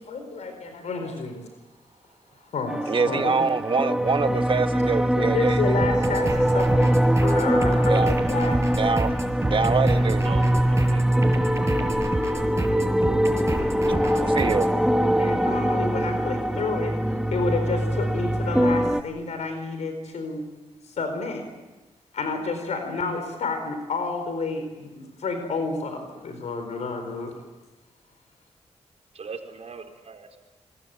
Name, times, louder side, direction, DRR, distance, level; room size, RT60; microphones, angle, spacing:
voice 1, 0.0-1.5 2.5-3.4 4.3-4.6 5.2-8.6 15.0-16.9 17.3-20.4 21.0-21.4 22.1-27.3, left 3 dB, 85° left, 4.4 m, -30 dB
sound 1, 2.7-19.0, equal, 5° right, 1.8 m, -23 dB
voice 2, 2.9-5.8 7.9-8.1 8.7-9.1 9.4-10.2 13.9-14.7, right 4 dB, 45° right, 1.5 m, -25 dB
sound 2, 5.8-14.7, right 1 dB, 25° right, 6.2 m, -30 dB
voice 3, 10.2-11.3 29.1-30.4, right 5 dB, 65° right, 4.5 m, -40 dB
28.0 x 20.5 x 9.0 m
cardioid pair, 65°, 12 cm